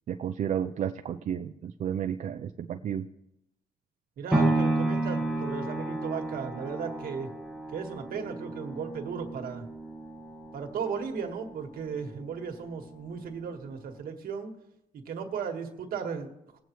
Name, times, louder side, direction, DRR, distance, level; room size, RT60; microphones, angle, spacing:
voice 1, 0.1-3.1, right 9 dB, 55° right, 7 dB, 0.4 m, -32 dB
voice 2, 4.2-7.3 7.7-9.6 10.5-14.5 14.9-16.6, right 6 dB, 70° right, 4 dB, 1.6 m, -36 dB
sound 1, 4.3-12.4 12.9-13.0, right 2 dB, 5° right, 1.4 m, -32 dB
20.5 x 8.1 x 3.1 m, 0.86 s
wide cardioid pair, 165°, 15 cm